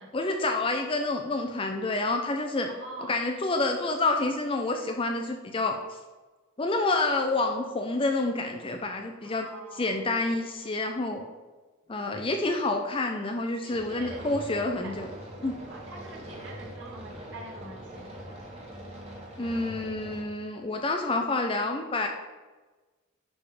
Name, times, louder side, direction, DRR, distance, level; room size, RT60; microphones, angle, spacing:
voice 1, 0.1-2.7 3.1-5.7 6.6-11.2 11.9-15.1 15.4-15.5 19.4-22.1, left 2 dB, 25° left, 3 dB, 0.5 m, -28 dB
voice 2, 2.6-3.2 9.2-10.1 13.6-15.0 15.7-18.4, right 2 dB, 65° right, -3 dB, 2.0 m, -45 dB
sound 1, 13.7-20.2, equal, 30° right, 1.7 m, -43 dB
10.5 x 3.6 x 5.1 m, 1.3 s
head